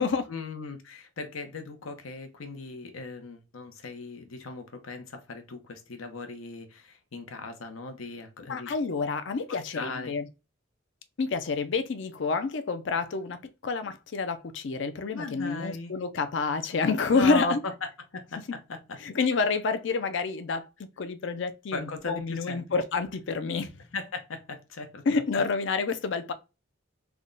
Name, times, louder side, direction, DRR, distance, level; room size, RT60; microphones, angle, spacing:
voice 1, 0.3-8.7 9.5-10.1 15.1-15.9 17.1-19.0 21.7-22.6 23.9-25.2, left 3 dB, 85° left, 0.8 m, -37 dB
voice 2, 8.5-10.2 11.2-17.6 18.5-18.6 19.0-20.7 21.0-23.7 25.1-26.3, left 4 dB, 65° left, 0.5 m, -28 dB
3.5 x 2.1 x 3.7 m
head